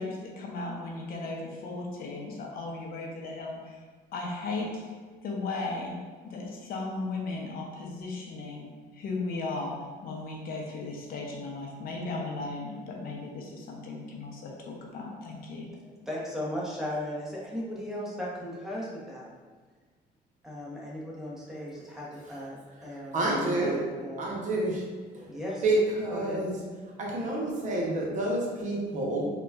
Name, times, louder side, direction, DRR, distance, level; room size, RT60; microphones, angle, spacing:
voice 1, 0.0-3.8 4.1-4.8 5.2-6.0 6.2-8.7 8.9-15.7, left 3 dB, 60° left, -1 dB, 0.6 m, -36 dB
voice 2, 15.8-19.3 20.4-22.6 22.8-24.3 25.3-25.6 26.1-26.4, left 1 dB, ahead, -6 dB, 0.8 m, -37 dB
voice 3, 23.1-23.8 24.2-24.8 25.1-26.5 27.0-29.3, right 2 dB, 45° right, -3 dB, 0.7 m, -28 dB
3.8 x 2.2 x 2.3 m, 1.4 s
cardioid pair, 110°, 17 cm